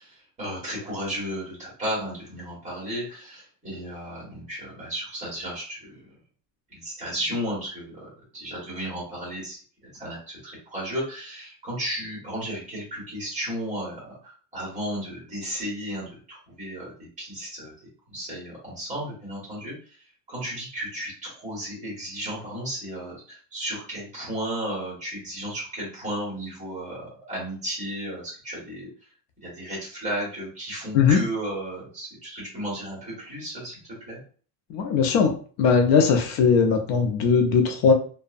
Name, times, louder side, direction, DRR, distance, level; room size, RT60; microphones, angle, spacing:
voice 1, 0.0-6.0 6.7-17.7 18.1-19.7 20.3-28.9 29.4-33.8 34.1-34.2, equal, 15° right, -5 dB, 1.3 m, -34 dB
voice 2, 34.7-35.3 35.6-37.9, left 6 dB, 75° left, 4 dB, 0.6 m, -19 dB
2.6 x 2.1 x 2.4 m, 0.42 s
cardioid pair, 170°, 43 cm